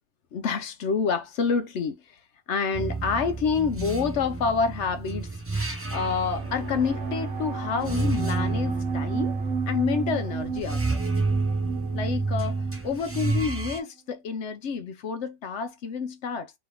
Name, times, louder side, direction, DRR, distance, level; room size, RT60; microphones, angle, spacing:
voice 1, 0.3-2.2 2.5-5.3 5.6-9.4 9.7-11.0 11.9-16.5, left 5 dB, 65° left, 0.8 m, -28 dB
sound 1, 2.7-13.8, right 3 dB, 15° right, 0.5 m, -30 dB
sound 2, 6.3-13.9, right 6 dB, 60° right, 1.1 m, -35 dB
3.4 x 3.0 x 3.4 m
omnidirectional pair, 1.4 m